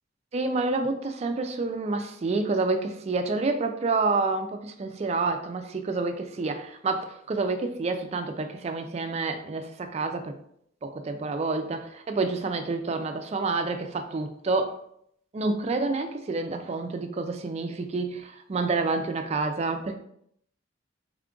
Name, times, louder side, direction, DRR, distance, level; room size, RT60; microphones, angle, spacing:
voice 1, 0.3-10.4 10.8-14.8 15.3-20.0, right 3 dB, 35° right, 7 dB, 0.3 m, -28 dB
3.5 x 2.3 x 3.7 m, 0.70 s
head